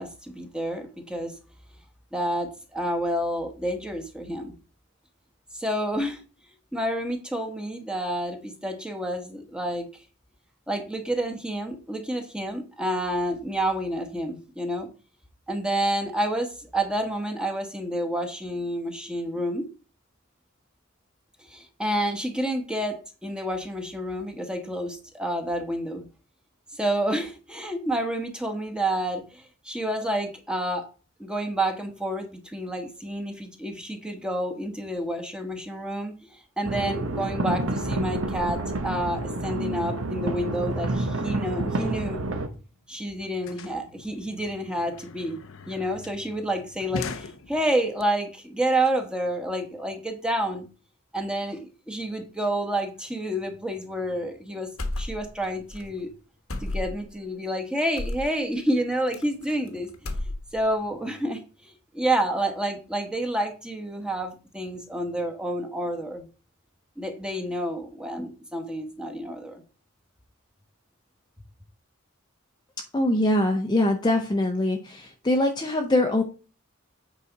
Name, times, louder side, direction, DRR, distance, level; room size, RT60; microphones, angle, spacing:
voice 1, 0.0-1.3 2.1-4.5 5.5-6.2 6.7-9.9 10.7-14.9 15.5-19.6 21.5-26.1 26.8-30.9 31.2-42.2 42.9-45.4 45.7-50.7 51.1-54.7 55.0-56.1 56.6-59.9 60.5-66.3 67.0-69.6, right 1 dB, 5° right, 4 dB, 1.2 m, -29 dB
sound 1, 36.6-42.5, right 2 dB, 75° right, 1.0 m, -29 dB
sound 2, 42.5-42.6 42.8-48.0, left 4 dB, 70° left, 0.7 m, -40 dB
sound 3, 54.8-55.5 55.7-55.9 56.5-57.1 58.0-58.3 59.1-59.7 59.9-60.7, left 1 dB, 90° left, 1.2 m, -32 dB
voice 2, 72.9-76.2, left 1 dB, 20° left, 4 dB, 0.6 m, -23 dB
8.4 x 4.9 x 4.0 m, 0.35 s
head